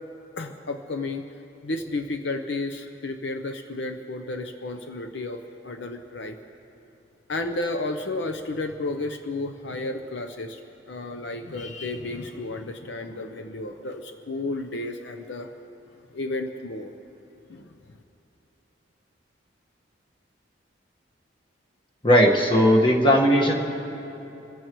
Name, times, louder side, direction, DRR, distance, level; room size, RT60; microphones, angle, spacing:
voice 1, 0.4-1.3 1.6-6.4 7.3-10.6 10.9-15.5 16.1-16.9 17.5-17.8, left 2 dB, 70° left, 6 dB, 0.7 m, -32 dB
voice 2, 22.0-23.5, equal, 25° left, 0 dB, 1.4 m, -17 dB
26.5 x 15.5 x 3.1 m, 3.0 s
head